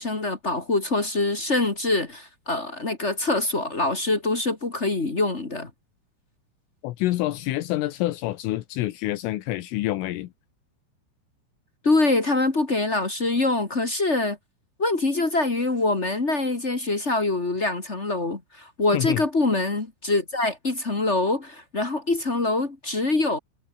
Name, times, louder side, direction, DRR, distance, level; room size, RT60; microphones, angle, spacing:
voice 1, 0.0-5.7 11.8-14.4 14.8-23.4, left 2 dB, 45° left, 0.8 m, -24 dB
voice 2, 6.8-10.3 18.9-19.2, left 16 dB, 80° left, 3.7 m, -27 dB
omnidirectional pair, 5.8 m